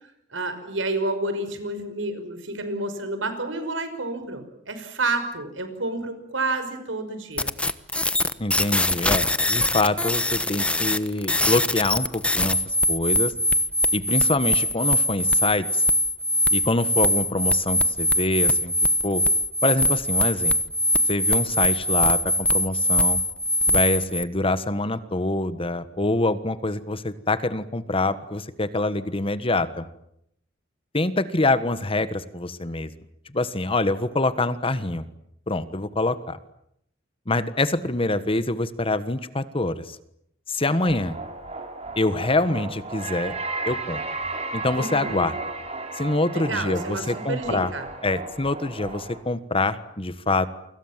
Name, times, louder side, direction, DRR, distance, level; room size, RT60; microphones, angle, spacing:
voice 1, 0.3-7.5 44.7-45.3 46.3-47.9, right 2 dB, 80° right, 9 dB, 5.7 m, -30 dB
sound 1, 7.4-24.2, left 1 dB, 5° left, 1.1 m, -22 dB
voice 2, 8.4-12.6 12.9-13.3 13.9-15.8 16.5-18.7 19.0-19.2 19.6-20.5 21.1-23.2 23.7-29.8 30.9-32.9 33.3-35.1 35.5-36.4 37.3-40.0 40.5-41.2 41.9-43.3 43.6-44.0 44.5-45.4 45.9-47.7 48.0-50.5, left 2 dB, 30° left, 13 dB, 1.4 m, -25 dB
sound 2, 40.8-49.2, right 3 dB, 35° right, 4.1 m, -34 dB
29.0 x 25.5 x 7.5 m, 0.75 s
head